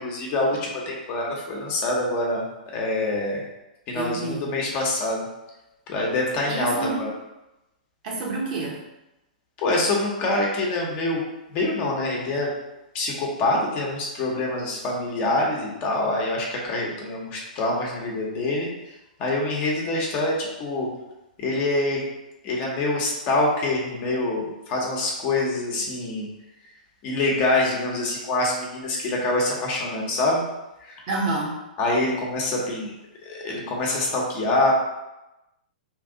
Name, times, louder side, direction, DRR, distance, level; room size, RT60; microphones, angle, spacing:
voice 1, 0.0-2.4 2.7-3.4 3.9-5.3 5.9-7.1 9.6-11.2 11.5-12.5 12.9-18.7 19.2-20.9 21.4-22.0 22.4-26.3 27.0-30.4 30.8-30.9 31.8-32.9 33.2-34.7, left 2 dB, 35° left, -2 dB, 0.9 m, -25 dB
voice 2, 3.9-4.5 6.5-7.1 8.0-8.8 31.1-31.5, right 2 dB, 50° right, -2 dB, 1.0 m, -28 dB
3.0 x 2.6 x 3.7 m, 0.96 s
hypercardioid pair, 115°, 5 cm